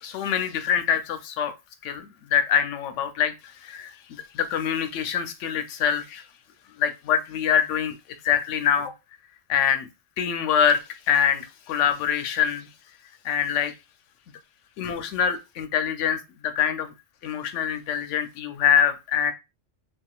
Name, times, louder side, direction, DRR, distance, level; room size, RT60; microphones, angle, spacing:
voice 1, 0.0-1.5 1.8-6.2 6.8-7.9 8.2-8.9 9.5-9.9 10.2-12.7 13.2-13.7 14.8-16.9 17.2-19.3, left 8 dB, 80° left, 9 dB, 0.9 m, -24 dB
3.5 x 2.3 x 2.3 m, 0.25 s
omnidirectional pair, 1.2 m